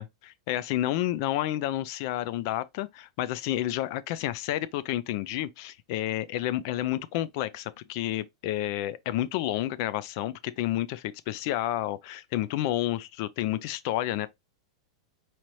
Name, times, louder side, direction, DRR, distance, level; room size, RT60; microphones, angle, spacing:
voice 1, 0.0-14.3, left 14 dB, 45° left, 0.3 m, -30 dB
4.3 x 3.1 x 2.5 m
supercardioid pair, 160°, 3 cm